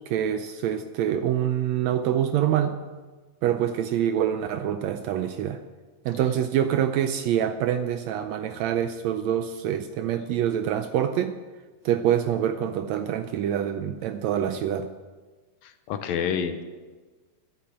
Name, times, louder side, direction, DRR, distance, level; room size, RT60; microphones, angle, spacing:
voice 1, 0.1-2.8 3.4-5.6 6.0-11.4 11.8-14.9, right 10 dB, 80° right, 8 dB, 1.6 m, -25 dB
voice 2, 15.6-16.6, left 7 dB, 75° left, 8 dB, 1.8 m, -28 dB
11.0 x 8.3 x 8.8 m, 1.4 s
omnidirectional pair, 3.7 m